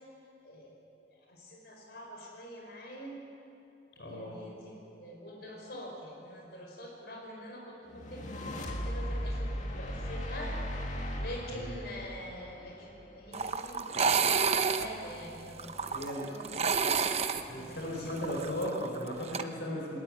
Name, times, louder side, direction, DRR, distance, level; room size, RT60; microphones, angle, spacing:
voice 1, 0.4-0.8 1.1-3.2 4.0-10.5 11.1-17.0 17.5-18.1, equal, 65° left, 0 dB, 5.1 m, -45 dB
voice 2, 4.0-4.4 11.5-11.7 15.9-16.3 17.5-20.0, equal, 80° left, -1 dB, 4.8 m, -36 dB
sound 1, 7.9-13.3, equal, 45° left, 2.2 m, -37 dB
sound 2, 13.3-19.4, right 5 dB, 35° right, 0.8 m, -30 dB
21.0 x 20.5 x 9.0 m, 2.7 s
head